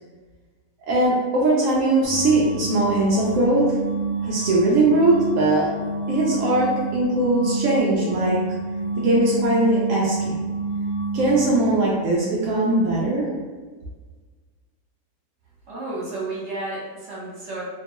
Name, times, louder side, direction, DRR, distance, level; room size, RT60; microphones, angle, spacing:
voice 1, 0.9-3.8 4.2-5.7 6.1-8.4 9.0-10.4 11.1-13.3, right 2 dB, 70° right, -4 dB, 0.7 m, -20 dB
sound 1, 2.0-11.7, right 3 dB, 70° left, 1.1 m, -28 dB
voice 2, 15.7-17.6, right 2 dB, 50° right, -7 dB, 1.2 m, -32 dB
2.9 x 2.2 x 2.8 m, 1.4 s
omnidirectional pair, 1.7 m